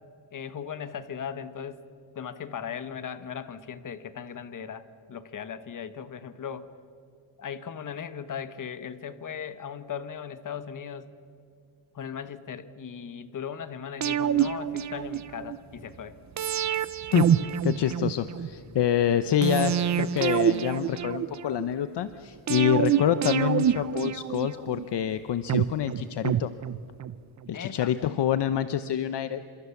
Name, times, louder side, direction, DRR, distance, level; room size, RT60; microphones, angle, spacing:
voice 1, 0.3-1.8 2.1-4.8 5.1-6.7 7.4-11.1 11.9-16.2 27.5-27.9, left 7 dB, 40° left, 11 dB, 1.3 m, -37 dB
sound 1, 14.0-15.6 16.4-18.5 19.4-21.6 22.5-24.8 25.5-27.2 27.5-27.6, right 9 dB, 35° right, 0.6 m, -27 dB
voice 2, 17.6-26.5 27.5-29.4, left 10 dB, 55° left, 11 dB, 0.9 m, -26 dB
29.0 x 27.0 x 7.2 m, 2.4 s
wide cardioid pair, 170°, 48 cm